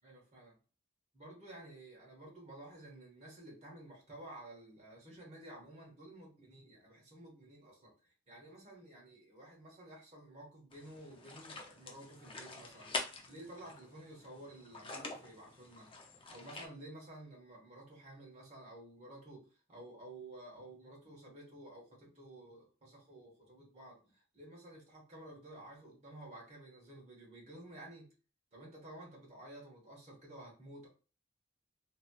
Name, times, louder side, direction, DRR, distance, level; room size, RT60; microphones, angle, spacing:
voice 1, 0.0-0.6 1.1-12.9 13.3-15.9 16.3-28.1 28.5-30.9, right 1 dB, 35° right, -2 dB, 1.1 m, -53 dB
sound 1, 10.7-16.7, left 3 dB, 25° left, 0.5 m, -46 dB
3.0 x 2.7 x 2.2 m, 0.35 s
head